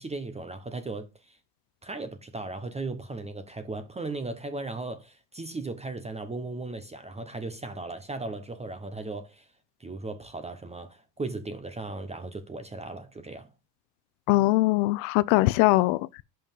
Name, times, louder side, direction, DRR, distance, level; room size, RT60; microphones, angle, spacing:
voice 1, 0.0-1.4 1.8-9.5 9.8-13.5, right 3 dB, 15° right, 0.8 m, -37 dB
voice 2, 14.3-16.2, left 19 dB, 70° left, 0.5 m, -22 dB
5.7 x 5.2 x 5.2 m
supercardioid pair, 110°, 47 cm